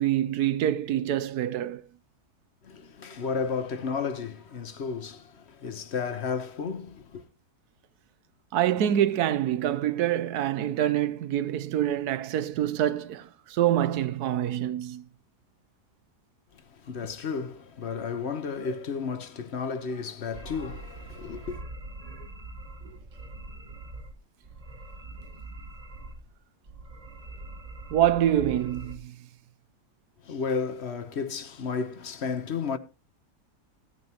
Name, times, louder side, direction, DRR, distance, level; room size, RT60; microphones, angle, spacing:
voice 1, 0.0-1.8 8.5-15.0 27.9-29.1, right 11 dB, 85° right, 1.3 m, -26 dB
voice 2, 2.6-7.2 16.5-21.6 30.2-32.8, left 5 dB, 50° left, 1.1 m, -33 dB
sound 1, 20.3-24.1 24.4-26.3 26.6-29.0, right 2 dB, 30° right, 0.8 m, -43 dB
16.0 x 9.0 x 2.9 m
omnidirectional pair, 1.6 m